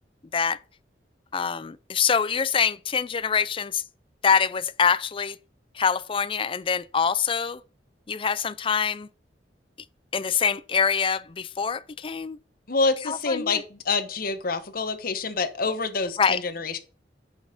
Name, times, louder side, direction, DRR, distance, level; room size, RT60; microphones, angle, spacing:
voice 1, 1.3-3.8 4.2-5.4 5.7-7.6 8.1-9.1 10.1-12.4 13.1-13.6 16.2-16.4, left 6 dB, 30° left, 0.4 m, -25 dB
voice 2, 12.7-16.8, left 4 dB, 55° left, 1.1 m, -27 dB
6.2 x 5.4 x 5.0 m
head